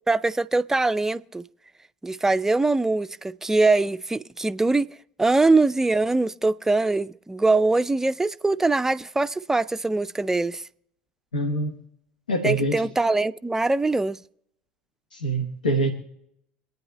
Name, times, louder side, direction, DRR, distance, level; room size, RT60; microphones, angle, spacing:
voice 1, 0.1-1.4 2.0-10.6 12.4-14.2, right 3 dB, 10° right, 0.4 m, -22 dB
voice 2, 11.3-11.7 12.3-12.8 15.1-15.9, right 1 dB, 90° left, 1.0 m, -24 dB
27.0 x 9.3 x 2.2 m
hypercardioid pair, 70°, 5 cm